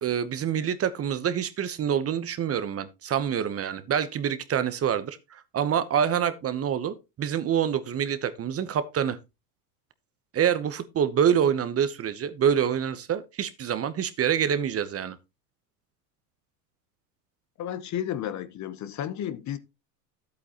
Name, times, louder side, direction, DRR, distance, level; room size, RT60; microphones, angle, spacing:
voice 1, 0.0-9.2 10.3-15.2, right 8 dB, 30° right, 0.9 m, -26 dB
voice 2, 17.6-19.6, left 10 dB, 35° left, 0.9 m, -32 dB
11.0 x 8.5 x 2.9 m
hypercardioid pair, 90°, 47 cm